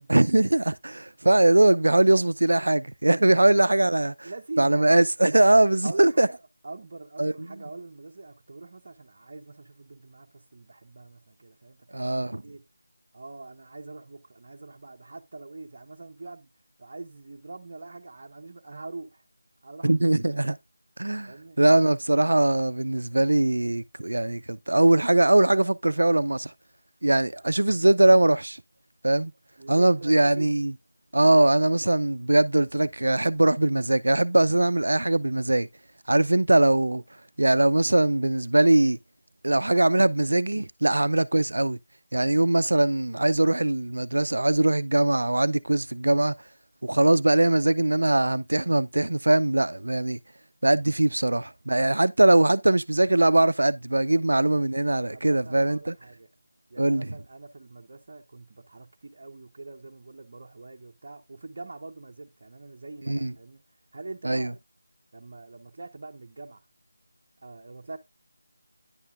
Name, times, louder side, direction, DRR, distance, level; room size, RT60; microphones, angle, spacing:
voice 1, 0.1-4.3 4.6-6.3 7.2-7.5 11.9-12.4 19.8-20.6 21.0-26.5 27.0-28.6 29.0-29.3 29.7-30.7 31.1-35.7 36.1-37.0 37.4-39.0 39.4-41.8 42.1-46.3 46.8-50.2 50.6-56.0 56.8-57.1 63.1-63.3 64.2-64.5, right 1 dB, 75° right, 0.5 m, -21 dB
voice 2, 4.2-4.9 5.3-5.6 5.8-6.4 6.6-12.1 12.4-12.6 13.1-16.5 16.8-19.2 19.6-20.1 20.4-20.5 21.2-21.6 29.6-30.5 54.1-54.3 55.1-56.3 56.7-63.6 63.9-64.6 65.1-66.6 67.4-68.0, right 3 dB, 45° right, 0.8 m, -43 dB
9.9 x 5.5 x 2.5 m
figure-of-eight pair, 165°, 0 cm